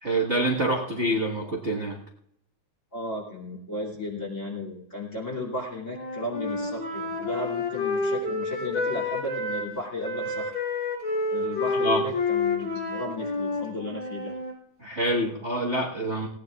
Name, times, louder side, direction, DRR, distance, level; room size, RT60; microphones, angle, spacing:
voice 1, 0.0-2.0 11.8-12.0 14.8-16.3, right 1 dB, 40° right, -2 dB, 1.0 m, -26 dB
voice 2, 2.9-10.5 11.3-14.3, left 2 dB, 25° left, 0 dB, 2.7 m, -35 dB
Wind instrument woodwind instrument, 5.9-9.7 10.0-14.5, left 3 dB, 45° left, 3.7 m, -29 dB
19.5 x 17.5 x 2.4 m, 0.76 s
omnidirectional pair, 3.6 m